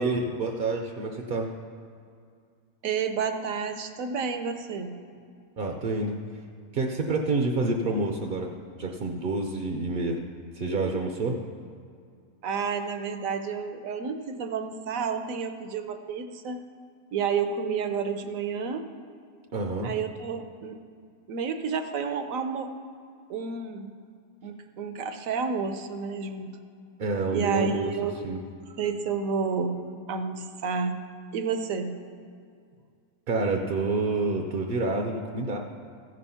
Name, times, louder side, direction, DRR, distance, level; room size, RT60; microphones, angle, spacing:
voice 1, 0.0-1.5 5.6-6.2 6.7-10.2 10.5-11.4 19.5-19.9 27.0-27.9 28.2-28.4 33.3-35.6, right 3 dB, 55° right, 2 dB, 0.6 m, -28 dB
voice 2, 2.8-5.0 12.4-16.6 17.1-18.9 19.8-20.8 21.3-22.7 23.3-23.9 24.4-26.6 27.3-28.3 28.8-29.8 30.1-31.0 31.3-32.0, right 5 dB, 70° right, 8 dB, 1.1 m, -30 dB
14.5 x 5.3 x 5.6 m, 2.3 s
omnidirectional pair, 1.6 m